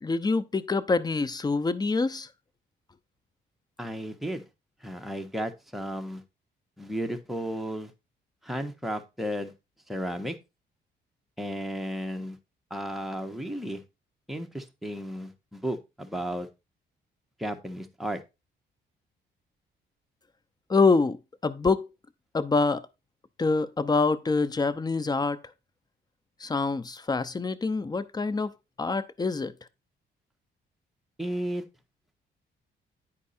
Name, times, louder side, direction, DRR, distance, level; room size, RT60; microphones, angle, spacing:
voice 1, 0.0-2.3 20.7-21.9 22.3-22.9 23.4-25.4 26.4-28.5 28.8-29.5, left 4 dB, 20° left, 0.7 m, -25 dB
voice 2, 3.8-4.4 4.8-6.2 6.8-7.9 8.4-9.5 9.9-10.3 11.4-12.4 12.7-13.8 14.3-16.5 17.4-18.2 31.2-31.6, equal, ahead, 1.3 m, -33 dB
9.9 x 4.6 x 4.3 m
cardioid pair, 90°, 20 cm